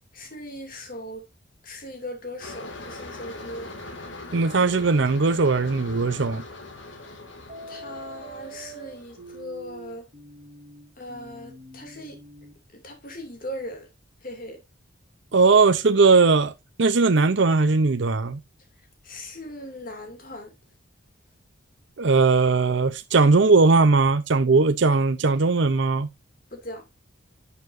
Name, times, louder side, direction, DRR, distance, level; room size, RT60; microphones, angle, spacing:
voice 1, 0.1-1.2 1.6-3.7 7.7-10.1 11.0-12.2 12.7-13.9 14.2-14.6 19.0-20.5 26.5-26.9, left 1 dB, 45° left, 2.6 m, -39 dB
sound 1, 2.4-9.5, left 2 dB, 65° left, 2.3 m, -41 dB
voice 2, 4.3-6.4 15.3-16.5 16.8-18.4 22.0-26.1, right 4 dB, 60° right, 0.6 m, -19 dB
sound 2, 7.5-12.5, right 1 dB, 35° right, 3.0 m, -44 dB
11.0 x 6.7 x 2.6 m
head